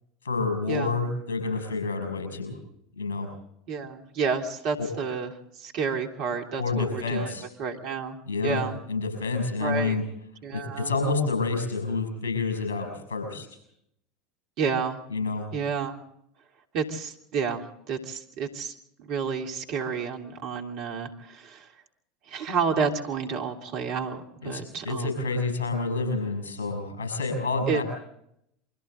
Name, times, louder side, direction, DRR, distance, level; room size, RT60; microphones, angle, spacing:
voice 1, 0.2-2.6 3.0-3.3 4.8-4.9 6.6-7.4 8.3-10.0 10.5-13.5 15.1-15.5 24.4-27.8, left 3 dB, 70° left, 6 dB, 6.6 m, -28 dB
voice 2, 3.7-5.3 5.6-7.3 7.6-8.2 8.4-8.8 9.6-10.0 10.4-10.9 14.6-15.0 15.5-16.0 16.7-21.7 22.3-25.1 27.7-27.8, right 6 dB, 50° right, 3 dB, 3.1 m, -30 dB
28.5 x 24.5 x 3.8 m, 0.74 s
figure-of-eight pair, 75°, 0 cm